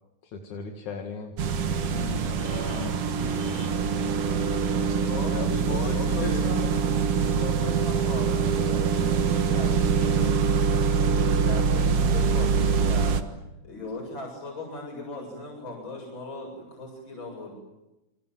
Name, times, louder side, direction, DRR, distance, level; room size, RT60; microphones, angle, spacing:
voice 1, 0.2-1.3 4.3-6.8, left 5 dB, 80° left, 4 dB, 3.4 m, -37 dB
sound 1, 1.4-13.2, right 6 dB, 55° right, 2.4 m, -24 dB
voice 2, 1.8-3.7 4.0-4.2, left 2 dB, 15° left, 4 dB, 3.0 m, -38 dB
voice 3, 4.8-5.3 5.9-10.6 11.0-13.4 13.6-17.5, left 2 dB, 40° left, 0 dB, 8.6 m, -38 dB
29.5 x 25.5 x 7.6 m, 0.95 s
omnidirectional pair, 3.4 m